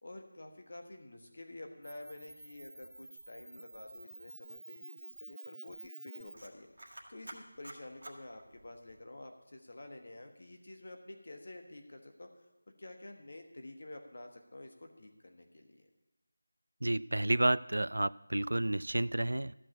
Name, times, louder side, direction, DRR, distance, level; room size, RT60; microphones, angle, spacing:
voice 1, 0.0-6.7 7.1-12.3 12.8-15.9, left 2 dB, 35° left, 4 dB, 1.4 m, -49 dB
Camera, 1.8-9.0, right 2 dB, 50° right, 1.7 m, -51 dB
voice 2, 16.8-19.5, right 1 dB, 85° right, 19 dB, 0.4 m, -30 dB
13.0 x 6.0 x 8.4 m, 1.0 s
figure-of-eight pair, 180°, 0 cm